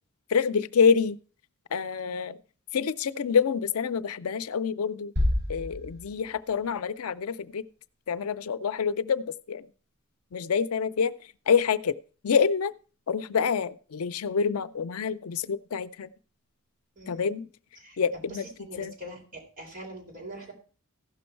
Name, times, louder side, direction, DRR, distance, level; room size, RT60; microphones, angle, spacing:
voice 1, 0.3-1.2 1.7-2.4 2.7-5.1 5.5-7.6 8.1-9.7 10.3-11.1 11.5-11.9 12.2-12.7 13.1-16.1 17.1-17.5 18.0-18.4 18.8-18.9, left 6 dB, 85° left, 14 dB, 0.5 m, -26 dB
sound 1, 5.2-7.0, left 1 dB, 55° right, 7.2 m, -29 dB
voice 2, 17.0-17.3 17.8-20.5, equal, 40° right, 0 dB, 3.8 m, -43 dB
15.5 x 6.2 x 4.5 m, 0.39 s
head